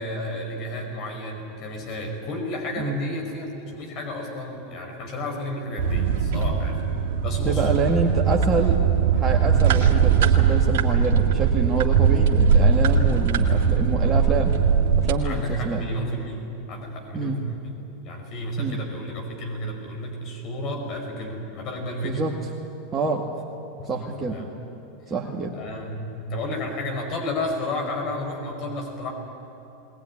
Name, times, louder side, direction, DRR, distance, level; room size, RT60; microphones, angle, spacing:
voice 1, 0.0-6.8 7.2-7.8 15.2-17.8 18.0-22.3 23.8-24.5 25.5-29.1, left 1 dB, 50° left, 2 dB, 5.1 m, -32 dB
sound 1, 5.8-15.2, right 6 dB, 65° right, 2.0 m, -20 dB
voice 2, 7.4-8.8 9.1-14.5 15.0-15.8 17.1-17.4 18.6-18.8 22.0-22.3 22.9-23.2 23.9-24.4 25.1-25.5, right 4 dB, 25° right, -1 dB, 2.1 m, -26 dB
20.5 x 19.5 x 9.9 m, 3.0 s
hypercardioid pair, 95°, 0 cm